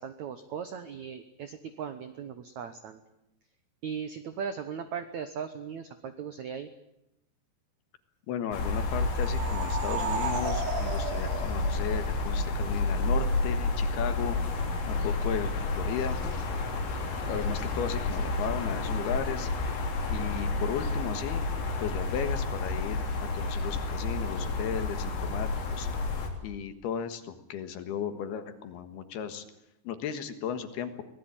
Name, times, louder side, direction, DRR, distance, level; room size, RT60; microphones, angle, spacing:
voice 1, 0.0-3.0 3.8-6.7, right 7 dB, 90° right, 9 dB, 1.6 m, -38 dB
voice 2, 8.3-14.4 14.9-16.2 17.3-19.5 20.1-21.4 21.8-25.9 26.4-29.4 29.8-31.0, left 8 dB, 70° left, 9 dB, 3.3 m, -35 dB
sound 1, 8.5-26.3, left 3 dB, 90° left, 5.8 m, -30 dB
sound 2, 8.9-12.4, right 6 dB, 50° right, 3.4 m, -35 dB
24.0 x 18.5 x 8.9 m, 0.86 s
omnidirectional pair, 5.1 m